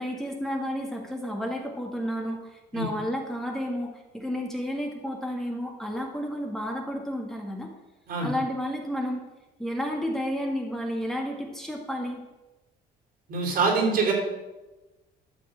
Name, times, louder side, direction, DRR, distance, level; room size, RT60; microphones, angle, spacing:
voice 1, 0.0-7.7 8.2-9.2 9.6-12.2, equal, ahead, 0 dB, 1.7 m, -31 dB
voice 2, 13.3-14.1, right 4 dB, 60° right, 1 dB, 3.5 m, -24 dB
12.5 x 4.2 x 7.7 m, 1.1 s
cardioid pair, 110°, 17 cm